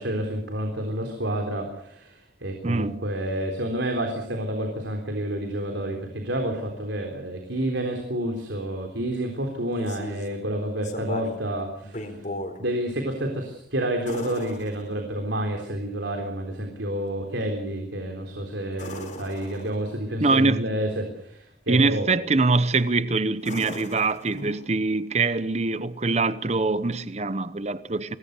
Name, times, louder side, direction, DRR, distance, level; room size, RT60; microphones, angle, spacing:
voice 1, 0.0-12.2 12.6-22.1 24.3-24.5, right 1 dB, 85° right, 3.8 m, -29 dB
voice 2, 2.6-3.0 20.2-20.6 21.7-28.2, right 3 dB, 35° right, 0.9 m, -23 dB
sound 1, 9.5-10.4 10.8-11.5 11.8-12.6 14.1-15.3 18.7-20.0 22.5-22.9 23.4-24.8 26.9-27.0, left 1 dB, 40° left, 4.1 m, -38 dB
24.5 x 20.0 x 6.7 m
head